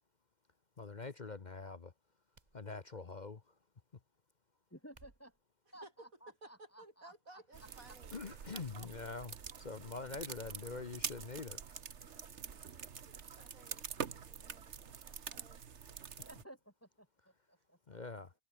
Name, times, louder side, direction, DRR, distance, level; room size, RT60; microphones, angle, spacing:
voice 1, 0.8-1.9 2.5-3.4 8.1-11.6 17.9-18.3, left 4 dB, 35° left, 1.1 m, -44 dB
sound 1, 2.3-3.2 4.8-5.5 6.3-6.6 7.1-7.2 8.2-8.4 8.7-8.8 10.7-10.9 11.2-11.3, right 3 dB, 30° right, 2.1 m, -66 dB
voice 2, 4.7-5.3 5.7-7.4 7.9-8.0 16.2-18.0, right 1 dB, 10° left, 1.8 m, -57 dB
voice 3, 5.7-6.1 6.4-8.2 8.7-8.9 9.5-9.6 12.1-12.5 13.1-15.6 17.9-18.0, right 2 dB, 90° right, 6.6 m, -59 dB
sound 2, 7.5-16.4, right 7 dB, 60° right, 1.5 m, -46 dB
omnidirectional pair, 1.4 m